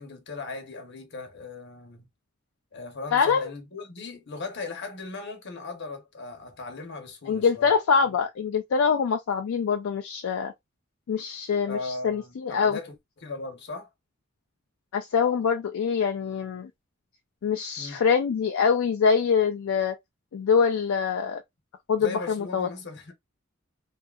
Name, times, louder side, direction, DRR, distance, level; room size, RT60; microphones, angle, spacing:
voice 1, 0.0-2.1 2.7-7.7 8.0-8.2 11.7-13.9 17.8-18.0 22.0-23.1, left 3 dB, 55° left, 0.9 m, -38 dB
voice 2, 3.1-3.5 7.3-10.5 11.1-12.8 14.9-16.7 17.4-20.0 20.3-21.4 21.9-22.7, left 6 dB, 75° left, 0.4 m, -24 dB
2.7 x 2.4 x 2.3 m
head